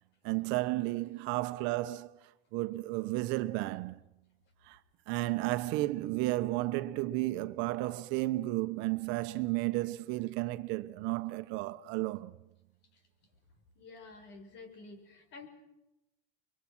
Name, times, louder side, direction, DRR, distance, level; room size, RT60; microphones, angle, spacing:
voice 1, 0.2-4.0 4.7-4.8 5.1-12.4, right 19 dB, 65° right, 1.2 m, -33 dB
voice 2, 13.8-15.5, left 3 dB, 60° left, 6.0 m, -50 dB
25.5 x 23.0 x 6.3 m
supercardioid pair, 125°, 21 cm